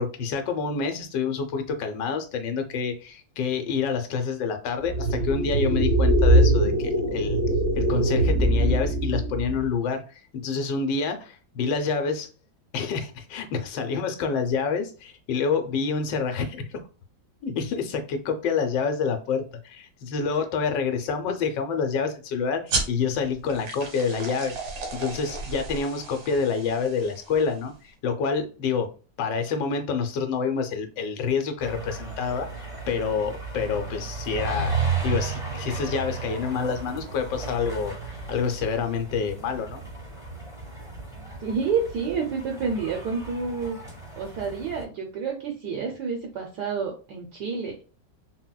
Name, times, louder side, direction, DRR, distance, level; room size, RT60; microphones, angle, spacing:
voice 1, 0.0-7.4 7.8-12.3 12.7-16.9 17.4-24.5 24.9-28.9 29.2-39.8, left 5 dB, 80° left, 5 dB, 1.2 m, -27 dB
sound 1, 4.8-9.7, right 1 dB, 45° right, 0.7 m, -22 dB
sound 2, 22.7-27.8, right 3 dB, 90° right, 1.5 m, -34 dB
sound 3, 31.6-44.8, right 4 dB, 5° right, 0.6 m, -34 dB
voice 2, 41.4-43.8 44.2-47.8, right 5 dB, 70° right, 1 dB, 1.1 m, -29 dB
4.0 x 2.1 x 2.2 m, 0.35 s
omnidirectional pair, 1.9 m